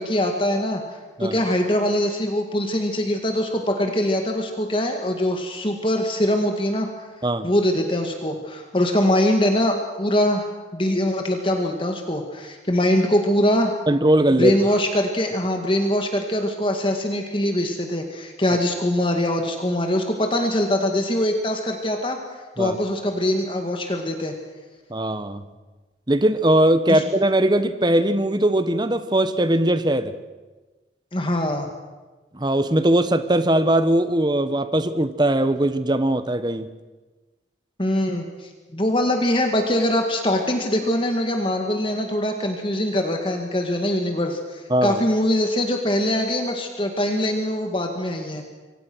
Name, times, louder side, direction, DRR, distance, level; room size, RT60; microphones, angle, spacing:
voice 1, 0.0-6.9 7.4-13.7 14.4-22.2 22.6-24.3 26.9-27.0 31.1-31.7 37.8-48.4, left 1 dB, 30° left, 4 dB, 2.0 m, -23 dB
voice 2, 13.9-14.6 22.6-22.8 24.9-25.4 26.1-30.2 32.3-36.7 44.7-45.0, right 1 dB, 25° right, 12 dB, 1.1 m, -20 dB
26.5 x 24.5 x 6.3 m, 1.2 s
head